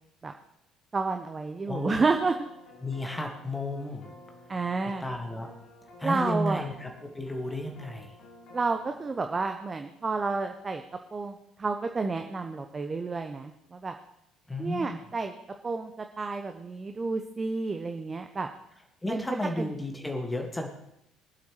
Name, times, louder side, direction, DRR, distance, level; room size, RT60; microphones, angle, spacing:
voice 1, 0.9-2.5 4.5-5.0 6.0-6.7 8.5-10.8 11.1-13.9 14.6-15.3 15.6-18.5 19.1-19.2 19.6-19.7, right 4 dB, 25° right, 6 dB, 0.8 m, -30 dB
sound 1, 1.7-9.1, left 1 dB, 50° left, 1.9 m, -52 dB
voice 2, 1.7-2.0 2.8-4.1 5.0-5.5 6.0-8.1 14.5-15.0 19.0-20.7, left 1 dB, 10° left, 2 dB, 1.9 m, -33 dB
23.5 x 8.4 x 3.2 m, 0.82 s
figure-of-eight pair, 55°, 0 cm